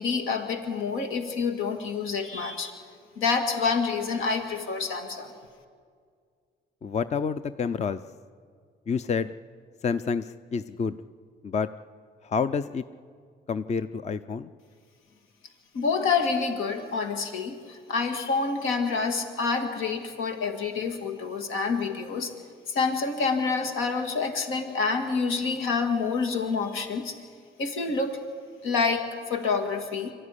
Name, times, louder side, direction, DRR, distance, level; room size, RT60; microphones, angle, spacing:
voice 1, 0.0-2.7 3.2-5.3 15.7-22.3 22.7-27.1 27.6-28.2 28.6-30.1, left 4 dB, 85° left, 5 dB, 2.1 m, -27 dB
voice 2, 6.8-8.0 8.9-9.3 9.8-11.0 11.4-11.7 12.2-12.8 13.5-14.5, left 5 dB, 35° left, 13 dB, 0.6 m, -28 dB
25.0 x 13.5 x 10.0 m, 2.1 s
cardioid pair, 90°, 20 cm